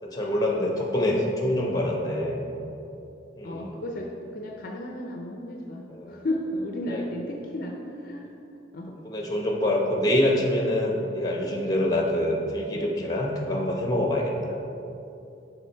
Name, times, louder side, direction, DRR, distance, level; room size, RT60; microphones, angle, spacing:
voice 1, 0.0-2.4 3.4-3.7 5.9-6.2 6.9-7.0 9.0-14.5, left 1 dB, 20° left, 0 dB, 0.8 m, -25 dB
voice 2, 3.4-8.2 8.7-8.9, left 1 dB, 50° left, 1 dB, 0.4 m, -33 dB
7.1 x 3.8 x 4.4 m, 2.9 s
head